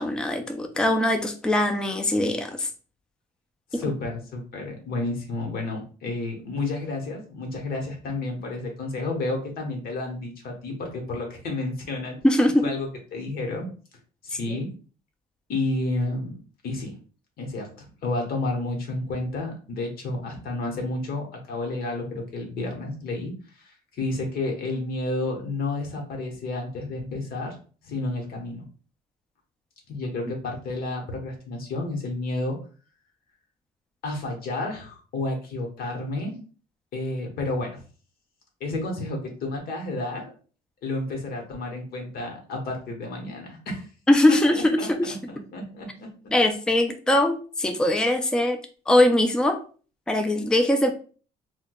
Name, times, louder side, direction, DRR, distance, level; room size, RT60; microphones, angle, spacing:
voice 1, 0.0-2.7 3.7-3.8 12.2-12.7 14.3-14.6 44.1-45.2 46.3-48.6 48.9-49.6 50.1-50.9, left 1 dB, 5° left, 6 dB, 0.4 m, -21 dB
voice 2, 3.7-12.2 12.6-13.7 14.2-14.7 15.5-16.3 16.6-17.0 17.4-27.6 27.8-28.6 29.9-32.6 34.0-36.4 36.9-37.8 38.6-40.3 40.8-43.9 44.3-44.4 44.8-46.3, left 2 dB, 65° left, 2 dB, 1.1 m, -31 dB
4.4 x 2.2 x 2.2 m, 0.39 s
cardioid pair, 110°, 17 cm